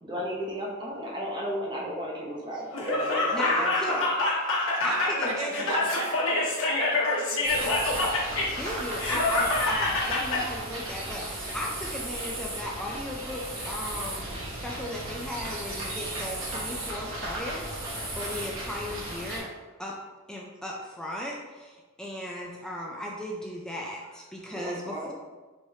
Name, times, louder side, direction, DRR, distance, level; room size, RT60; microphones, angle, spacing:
voice 1, 0.0-4.1 16.7-16.9 24.5-25.1, equal, 20° right, -3 dB, 0.7 m, -35 dB
Laughter, 2.7-10.4, left 2 dB, 65° left, 1.0 m, -26 dB
voice 2, 3.3-3.9 4.8-5.6 8.6-19.5 19.8-20.0 20.3-25.1, left 1 dB, 5° left, -3 dB, 0.3 m, -36 dB
voice 3, 4.8-6.3 6.6-7.9, right 3 dB, 85° right, 2 dB, 0.6 m, -36 dB
sound 1, 7.4-19.4, right 1 dB, 65° right, 1.1 m, -35 dB
4.7 x 3.0 x 2.7 m, 1.3 s
head